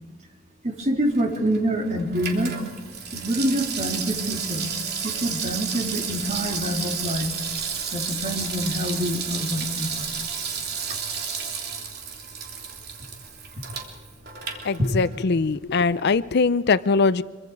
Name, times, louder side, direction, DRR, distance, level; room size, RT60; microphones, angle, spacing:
voice 1, 0.6-2.5 3.1-4.7 5.0-7.3 7.9-10.3 14.8-14.9, equal, 40° right, 1 dB, 3.2 m, -26 dB
Water tap faucet / Sink (filling or washing), 1.0-15.3 15.6-15.7, right 6 dB, 55° right, 3.2 m, -32 dB
voice 2, 14.6-17.2, left 4 dB, 60° left, 16 dB, 0.5 m, -21 dB
25.5 x 23.5 x 4.8 m, 1.4 s
head